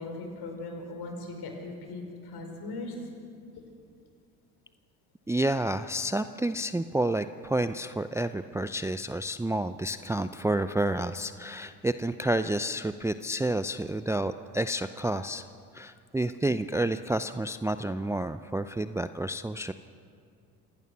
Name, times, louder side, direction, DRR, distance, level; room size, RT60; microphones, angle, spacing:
voice 1, 0.0-2.9 3.6-3.7, left 2 dB, 55° left, 3 dB, 5.2 m, -39 dB
voice 2, 5.3-15.4 15.7-19.7, right 1 dB, 5° right, 11 dB, 0.5 m, -29 dB
26.0 x 17.5 x 6.2 m, 2.3 s
hypercardioid pair, 60°, 46 cm